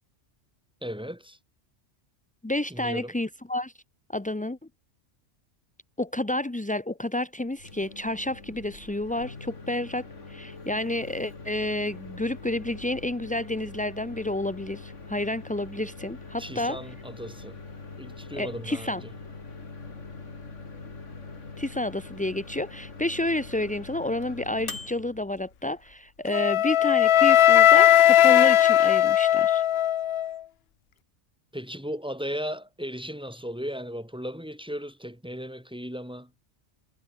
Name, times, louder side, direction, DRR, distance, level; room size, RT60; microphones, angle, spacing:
voice 1, 0.8-1.4 2.7-3.1 16.4-17.6 18.0-19.1 31.5-36.3, equal, 5° right, 4.3 m, -36 dB
voice 2, 2.4-3.7 4.1-4.6 6.0-16.8 18.3-19.0 21.6-29.6, left 1 dB, 10° left, 0.4 m, -30 dB
Microwave oven, 7.5-26.3, left 3 dB, 85° left, 3.1 m, -43 dB
Wind instrument woodwind instrument, 26.3-30.4, left 11 dB, 65° left, 0.8 m, -18 dB
omnidirectional pair, 1.2 m